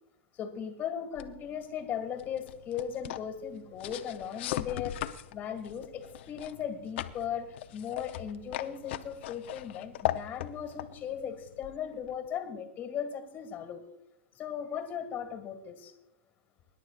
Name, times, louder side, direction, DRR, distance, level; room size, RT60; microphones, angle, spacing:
voice 1, 0.3-13.8 14.4-15.9, left 8 dB, 30° left, 8 dB, 1.9 m, -37 dB
sound 1, 1.2-12.3, left 13 dB, 65° left, 0.7 m, -40 dB
25.0 x 11.0 x 2.4 m, 0.89 s
hypercardioid pair, 135°, 7 cm